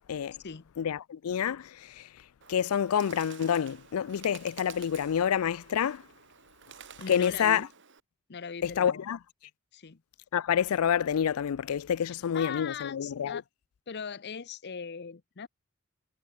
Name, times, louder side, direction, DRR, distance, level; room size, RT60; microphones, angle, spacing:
voice 1, 0.1-0.4 0.8-2.1 2.5-6.0 7.1-7.7 8.6-9.2 10.3-13.4, left 8 dB, 85° left, 0.4 m, -28 dB
Bird, 2.4-8.0, right 8 dB, 55° right, 3.2 m, -50 dB
voice 2, 7.0-7.7 8.3-9.1 9.7-10.0 12.3-13.4 13.9-15.5, left 6 dB, 50° left, 0.7 m, -40 dB
head